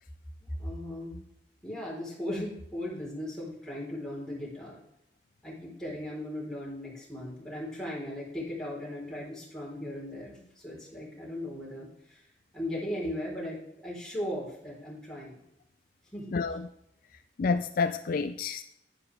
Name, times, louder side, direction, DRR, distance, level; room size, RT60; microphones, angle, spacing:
voice 1, 0.4-1.2 1.6-4.8 5.4-12.2 12.5-13.6 13.8-15.4 16.1-16.6, left 1 dB, 5° left, 4.1 m, -37 dB
voice 2, 16.3-16.7 17.4-18.6, left 4 dB, 50° left, 0.4 m, -29 dB
11.0 x 10.5 x 3.4 m
head